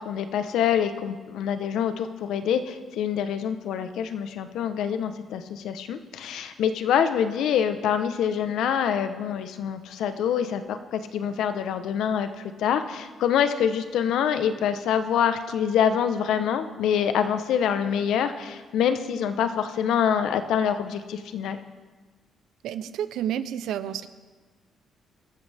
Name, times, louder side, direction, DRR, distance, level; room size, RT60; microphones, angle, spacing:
voice 1, 0.0-21.6, left 8 dB, 80° left, 9 dB, 1.0 m, -25 dB
voice 2, 22.6-24.1, right 10 dB, 85° right, 13 dB, 0.7 m, -30 dB
24.0 x 13.0 x 3.5 m, 1.4 s
cardioid pair, 90°, 0 cm